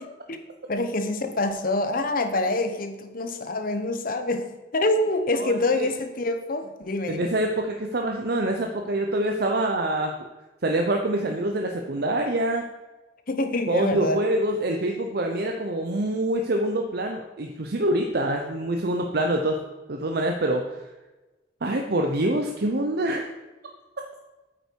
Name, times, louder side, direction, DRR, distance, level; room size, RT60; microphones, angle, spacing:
voice 1, 0.7-7.3 13.3-14.2, left 2 dB, 50° left, 8 dB, 1.0 m, -26 dB
voice 2, 5.3-5.9 7.1-10.1 10.6-12.6 13.7-19.6 19.9-20.7 21.6-23.2, right 1 dB, 60° right, 3 dB, 0.8 m, -25 dB
8.8 x 8.4 x 4.7 m, 1.1 s
head